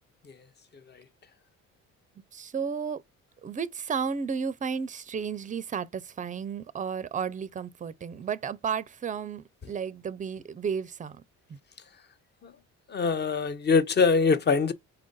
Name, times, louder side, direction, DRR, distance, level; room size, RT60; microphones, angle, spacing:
voice 1, 2.3-3.0 3.4-11.2, right 6 dB, 25° right, 0.4 m, -33 dB
voice 2, 12.9-14.7, left 5 dB, 30° left, 0.6 m, -23 dB
4.4 x 2.5 x 3.8 m
supercardioid pair, 75°, 33 cm